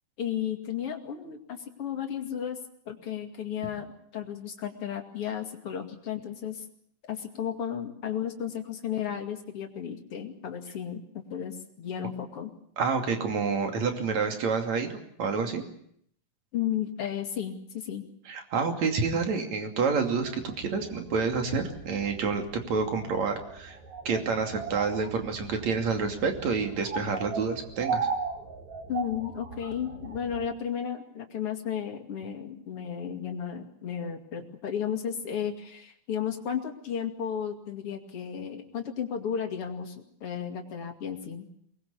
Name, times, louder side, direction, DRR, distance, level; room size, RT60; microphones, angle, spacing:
voice 1, 0.2-2.6 2.9-3.9 4.1-6.7 7.1-11.0 11.3-12.5 16.5-18.1 28.9-41.5, left 8 dB, 40° left, 4 dB, 2.9 m, -34 dB
voice 2, 12.8-14.9 15.2-15.6 18.3-23.8 24.1-28.1, right 5 dB, 50° right, 4 dB, 3.8 m, -28 dB
sound 1, 20.2-30.5, right 5 dB, 80° right, 5.0 m, -38 dB
23.5 x 20.0 x 8.4 m, 0.68 s
omnidirectional pair, 4.2 m